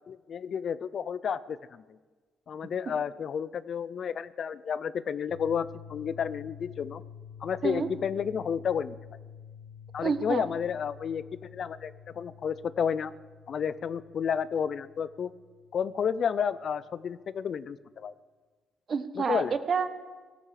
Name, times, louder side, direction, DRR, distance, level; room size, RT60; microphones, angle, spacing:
voice 1, 0.1-1.8 2.5-7.0 7.4-9.0 9.9-13.1 13.5-15.3 15.7-18.1 19.2-19.5, left 7 dB, 55° left, 17 dB, 0.5 m, -31 dB
sound 1, 5.3-17.2, left 7 dB, 80° right, 3.8 m, -49 dB
voice 2, 10.0-10.4 18.9-19.9, right 5 dB, 45° right, 11 dB, 1.1 m, -28 dB
17.5 x 13.0 x 5.0 m, 1.4 s
cardioid pair, 90°, 0 cm